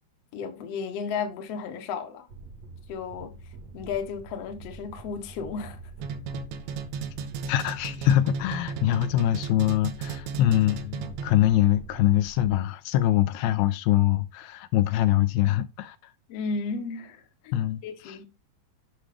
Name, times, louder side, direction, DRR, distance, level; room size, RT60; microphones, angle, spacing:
voice 1, 0.3-2.3 2.9-3.4 3.7-5.8 16.3-18.2, left 5 dB, 65° left, 1.6 m, -34 dB
sound 1, 2.3-12.6, right 3 dB, 55° right, 2.1 m, -45 dB
sound 2, 6.0-11.5, right 5 dB, 80° right, 3.0 m, -35 dB
voice 2, 7.5-16.1 17.5-18.2, left 13 dB, 85° left, 2.4 m, -24 dB
7.5 x 6.2 x 3.4 m
omnidirectional pair, 4.6 m